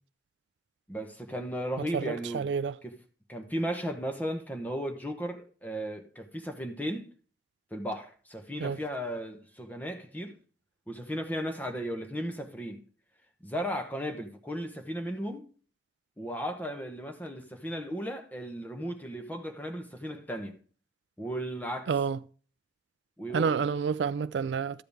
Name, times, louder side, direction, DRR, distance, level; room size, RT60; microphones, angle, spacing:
voice 1, 0.9-2.5 2.8-2.9 3.3-7.1 7.7-10.3 10.9-12.8 13.4-15.5 16.2-20.6 21.2-21.9 23.2-23.6, equal, 10° left, 1.0 m, -35 dB
voice 2, 1.9-2.8 8.6-8.8 21.9-22.2 23.3-24.8, right 6 dB, 75° right, 0.4 m, -29 dB
12.5 x 7.7 x 3.4 m
head